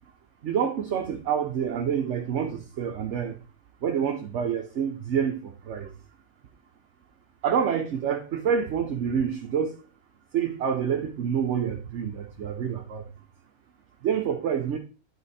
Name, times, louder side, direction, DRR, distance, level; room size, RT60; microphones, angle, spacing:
voice 1, 0.4-3.3 3.8-5.9 7.4-9.8 10.3-13.0 14.0-14.8, right 7 dB, 65° right, 1.0 m, -27 dB
9.5 x 4.0 x 4.1 m
omnidirectional pair, 1.4 m